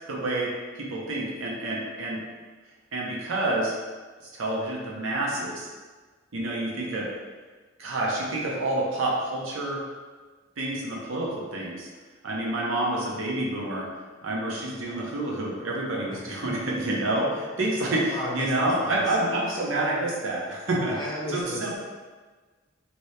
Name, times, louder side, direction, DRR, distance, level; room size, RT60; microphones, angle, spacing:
voice 1, 0.1-2.2 2.9-3.7 4.3-5.7 6.3-7.1 7.8-9.8 10.6-11.9 12.2-13.9 14.2-20.9 21.3-21.8, right 1 dB, 85° right, -3 dB, 0.7 m, -28 dB
voice 2, 18.1-19.1 20.8-21.8, equal, 20° left, -6 dB, 0.8 m, -35 dB
3.0 x 2.7 x 3.2 m, 1.4 s
head